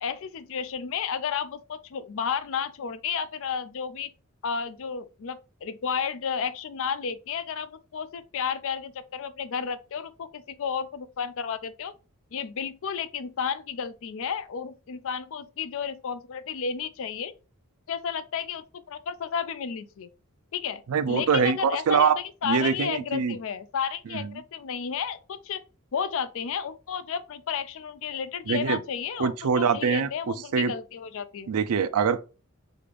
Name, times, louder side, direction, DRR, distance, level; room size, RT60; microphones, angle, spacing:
voice 1, 0.0-4.1 4.4-11.9 12.3-17.3 17.9-20.1 20.5-25.6 25.9-31.5, left 7 dB, 60° left, 0.4 m, -32 dB
voice 2, 20.9-22.1 22.4-23.4 24.1-24.3 28.5-28.8 29.2-30.7 31.5-32.2, right 6 dB, 75° right, 0.4 m, -24 dB
5.1 x 2.5 x 3.3 m
head